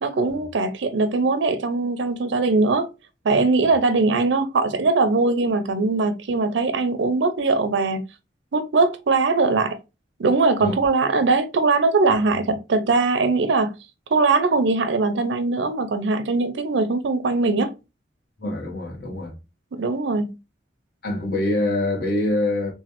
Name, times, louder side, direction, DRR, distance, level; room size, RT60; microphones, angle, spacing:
voice 1, 0.0-2.9 3.2-8.0 8.5-9.8 10.2-13.7 14.1-17.7 19.8-20.3, right 3 dB, 80° right, 0.5 m, -21 dB
voice 2, 18.4-19.4 21.0-22.7, left 1 dB, 55° left, 1.1 m, -24 dB
3.1 x 2.2 x 2.8 m
head